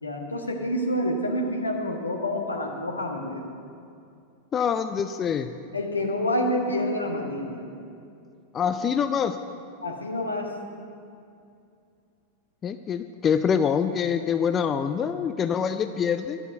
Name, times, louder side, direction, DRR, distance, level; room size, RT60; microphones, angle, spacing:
voice 1, 0.0-3.4 5.7-7.6 9.8-10.5, left 1 dB, 80° left, 1 dB, 1.4 m, -28 dB
voice 2, 4.5-5.5 8.5-9.4 12.6-16.4, left 7 dB, 25° left, 10 dB, 0.4 m, -25 dB
12.0 x 6.9 x 7.9 m, 2.5 s
figure-of-eight pair, 90°, 0 cm